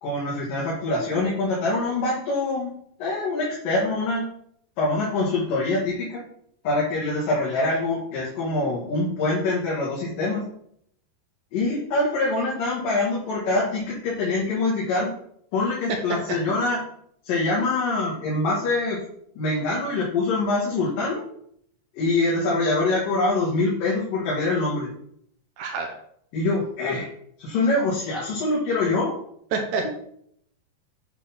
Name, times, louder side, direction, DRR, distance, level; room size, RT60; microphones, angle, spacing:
voice 1, 0.0-2.7 3.0-4.2 4.8-6.2 6.6-10.4 11.5-15.1 15.5-16.8 17.2-19.0 19.4-21.2 22.0-24.9 26.3-27.1 27.4-29.1 29.8-29.9, left 2 dB, 75° left, -6 dB, 3.4 m, -24 dB
voice 2, 25.6-25.9 29.5-29.9, right 4 dB, 75° right, 3 dB, 2.1 m, -27 dB
8.3 x 4.1 x 5.7 m, 0.69 s
omnidirectional pair, 4.0 m